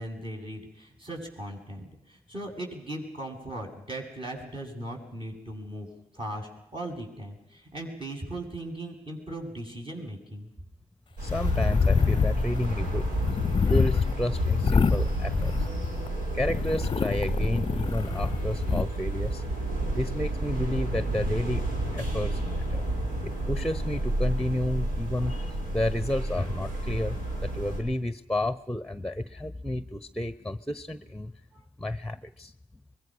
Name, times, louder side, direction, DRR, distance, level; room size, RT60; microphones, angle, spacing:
voice 1, 0.0-5.9 6.1-10.5, right 1 dB, 35° right, 1 dB, 7.8 m, -38 dB
voice 2, 11.2-13.1 13.7-15.7 16.3-19.4 19.9-21.7 21.9-22.8 23.2-32.5, left 1 dB, 5° left, 12 dB, 1.1 m, -31 dB
sound 1, 11.2-27.8, right 1 dB, 75° right, 5.4 m, -31 dB
sound 2, 11.3-16.1 16.4-18.8, left 5 dB, 35° left, 0.7 m, -27 dB
24.0 x 22.0 x 6.4 m, 0.85 s
hypercardioid pair, 40°, 15 cm